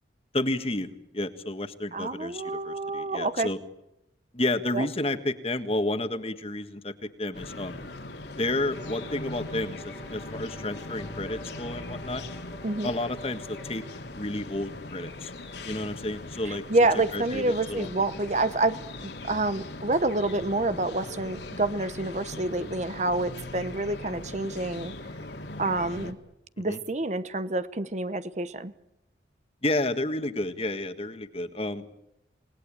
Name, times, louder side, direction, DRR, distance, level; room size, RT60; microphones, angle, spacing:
voice 1, 0.3-3.6 4.3-6.9 7.2-7.8 8.4-12.2 12.8-13.8 14.1-15.3 15.6-16.6 17.1-17.9 26.7-26.8 29.6-31.9, left 2 dB, 30° left, 9 dB, 1.6 m, -31 dB
voice 2, 1.9-3.5 4.7-4.9 12.6-12.9 16.4-24.9 25.6-26.2 26.6-28.7, right 2 dB, 40° right, 13 dB, 0.9 m, -28 dB
sound 1, 7.3-26.1, left 2 dB, 65° left, 2.5 m, -40 dB
Bowed string instrument, 8.7-14.1, left 1 dB, 15° left, 2.0 m, -49 dB
28.5 x 19.5 x 8.9 m, 0.87 s
head